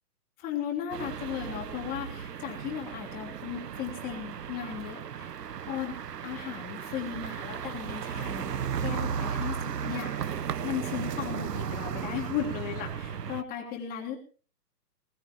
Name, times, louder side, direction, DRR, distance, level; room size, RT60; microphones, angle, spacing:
voice 1, 0.4-5.3 5.7-5.9 6.2-14.2, left 9 dB, 20° left, 1 dB, 3.3 m, -36 dB
sound 1, 0.9-13.4, right 8 dB, 75° right, 1.2 m, -35 dB
19.5 x 19.5 x 3.1 m, 0.40 s
hypercardioid pair, 160°, 49 cm